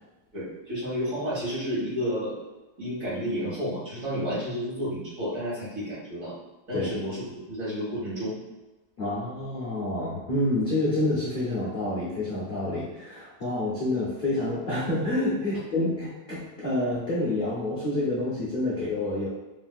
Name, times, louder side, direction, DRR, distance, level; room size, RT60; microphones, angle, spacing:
voice 1, 0.3-2.3 2.8-6.4 6.7-8.4 10.1-10.2, equal, 55° right, -9 dB, 1.7 m, -31 dB
voice 2, 9.0-19.3, left 1 dB, 60° left, -8 dB, 0.5 m, -28 dB
3.3 x 2.5 x 2.3 m, 1.1 s
omnidirectional pair, 1.8 m